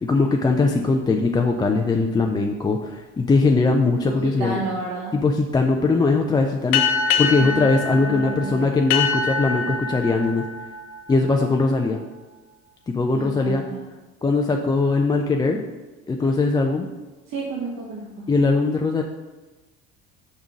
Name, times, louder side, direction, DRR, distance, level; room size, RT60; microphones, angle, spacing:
voice 1, 0.0-4.6 5.1-10.4 11.1-12.0 12.9-13.6 14.2-15.6 16.1-16.9 18.3-19.0, left 3 dB, 15° left, 2 dB, 0.4 m, -20 dB
voice 2, 4.1-5.2 7.4-8.7 13.1-13.9 17.3-18.3, right 3 dB, 60° right, -3 dB, 1.2 m, -31 dB
sound 1, 6.7-11.8, left 5 dB, 75° left, 0.8 m, -25 dB
5.3 x 3.6 x 5.0 m, 1.2 s
supercardioid pair, 90°, 31 cm